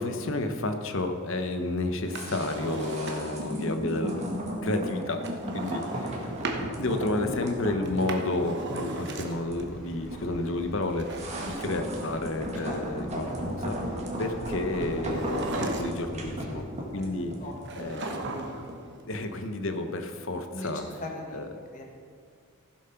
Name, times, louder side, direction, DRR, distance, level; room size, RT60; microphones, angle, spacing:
voice 1, 0.0-5.2 5.5-6.3 6.8-13.9 14.2-16.7 16.9-17.3 17.8-18.1 19.1-20.8 21.3-21.5, left 2 dB, 60° left, 7 dB, 1.0 m, -31 dB
Drawer open or close, 2.0-3.5 5.2-6.7 7.8-9.6 10.9-12.5 15.0-16.2 17.6-18.8 19.0-19.1, right 3 dB, 50° right, 1.1 m, -37 dB
sound 1, 2.1-19.3 19.6-19.7, equal, 30° right, 1.7 m, -36 dB
sound 2, 9.4-16.6, equal, ahead, 3.6 m, -44 dB
voice 2, 17.4-17.9 20.5-21.5 21.7-21.8, left 2 dB, 35° left, 0 dB, 1.4 m, -40 dB
15.0 x 7.7 x 5.8 m, 2.1 s
head